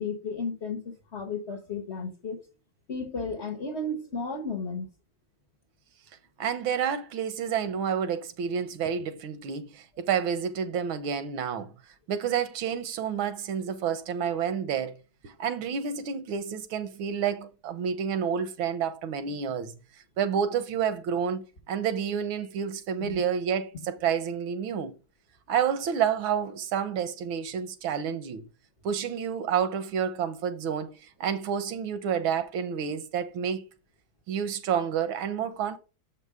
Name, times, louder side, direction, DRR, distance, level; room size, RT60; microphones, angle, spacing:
voice 1, 0.0-2.4 2.9-4.9 23.0-23.2, left 3 dB, 40° left, 1.1 m, -33 dB
voice 2, 6.4-11.7 12.1-15.0 15.2-19.7 20.2-24.9 25.5-28.4 28.8-33.6 34.3-35.8, right 7 dB, 80° right, 1.7 m, -29 dB
7.4 x 5.5 x 4.7 m
omnidirectional pair, 2.2 m